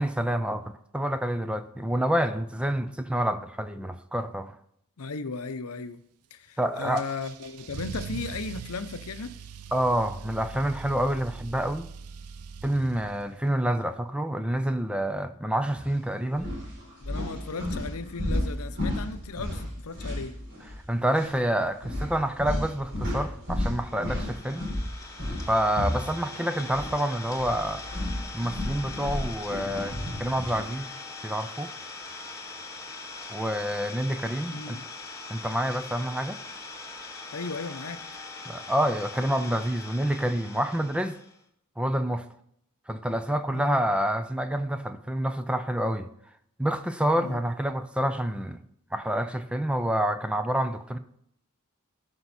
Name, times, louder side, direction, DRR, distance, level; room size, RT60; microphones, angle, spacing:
voice 1, 0.0-4.5 6.6-7.0 9.7-11.9 12.6-16.5 20.9-24.7 25.5-27.8 28.3-30.9 31.2-31.7 33.3-34.8 35.3-36.4 38.5-41.2 41.8-42.3 42.9-46.1 46.6-48.6 48.9-51.0, right 1 dB, 5° right, 0.5 m, -28 dB
voice 2, 5.0-6.0 6.3-9.4 17.0-20.4 34.5-34.8 37.3-38.1 43.5-43.8 47.1-47.4, left 4 dB, 75° left, 0.7 m, -36 dB
Car / Engine starting / Accelerating revving vroom, 7.0-13.5, right 5 dB, 90° right, 0.5 m, -41 dB
sound 1, 15.7-15.9 16.3-20.8 21.1-21.3 21.8-26.9 27.2-30.7, left 1 dB, 55° right, 4.4 m, -33 dB
Idling, 23.7-41.4, left 3 dB, 15° left, 1.3 m, -42 dB
15.5 x 5.4 x 4.2 m
head